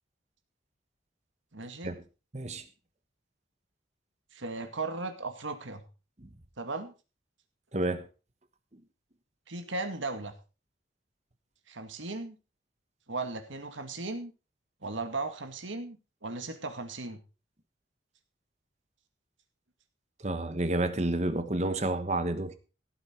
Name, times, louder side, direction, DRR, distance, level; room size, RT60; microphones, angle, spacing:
voice 1, 1.5-1.9 4.3-5.8 6.6-6.9 9.5-10.3 11.7-12.4 13.1-14.3 14.8-17.2, right 3 dB, 80° right, 2.1 m, -36 dB
voice 2, 2.3-2.6 6.2-6.3 7.7-8.1 20.2-22.6, right 2 dB, 35° right, 1.2 m, -30 dB
16.0 x 8.8 x 4.4 m
head